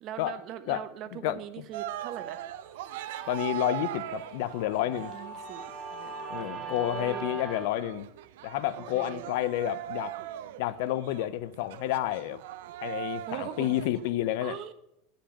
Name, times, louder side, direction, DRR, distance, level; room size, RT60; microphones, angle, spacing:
voice 1, 0.0-2.5 4.8-5.6 5.9-7.3 8.8-9.2 13.3-13.8 14.4-14.7, right 10 dB, 50° right, 1.0 m, -41 dB
voice 2, 0.7-1.4 3.3-5.1 6.3-8.1 8.4-10.1 10.6-12.4 12.8-14.6, left 13 dB, 70° left, 0.5 m, -30 dB
Cheering, 1.7-14.1, right 12 dB, 75° right, 0.5 m, -40 dB
Guitar, 2.2-7.7, right 3 dB, 30° right, 3.5 m, -42 dB
10.0 x 5.2 x 6.3 m
hypercardioid pair, 105°, 0 cm